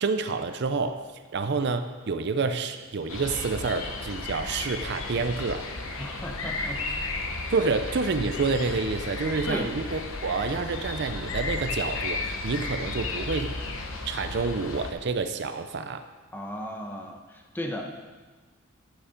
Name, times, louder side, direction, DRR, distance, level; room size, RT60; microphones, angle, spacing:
voice 1, 0.0-1.0 1.3-5.6 7.5-13.5 14.1-16.1, right 4 dB, 55° right, 9 dB, 0.5 m, -28 dB
sound 1, 3.1-14.9, left 3 dB, 85° left, 1.1 m, -34 dB
voice 2, 6.0-6.9 9.5-9.7 16.3-17.8, equal, 10° left, 2 dB, 1.0 m, -35 dB
11.0 x 6.9 x 5.1 m, 1.4 s
head